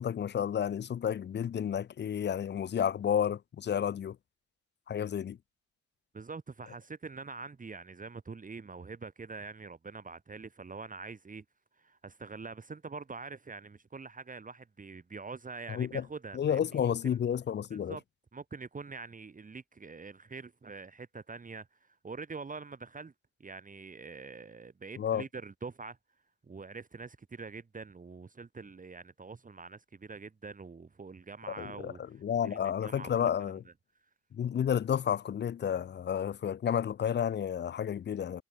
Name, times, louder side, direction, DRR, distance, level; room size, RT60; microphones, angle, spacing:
voice 1, 0.0-4.2 4.9-5.4 15.7-16.1 16.3-18.0 25.0-25.2 31.5-33.6 34.3-38.4, left 8 dB, 35° left, 0.5 m, -31 dB
voice 2, 6.1-11.4 11.8-17.2 17.7-18.0 18.3-23.1 23.4-26.0 26.4-32.0 32.4-33.3, right 4 dB, 25° right, 2.0 m, -45 dB
cardioid pair, 90°, 30 cm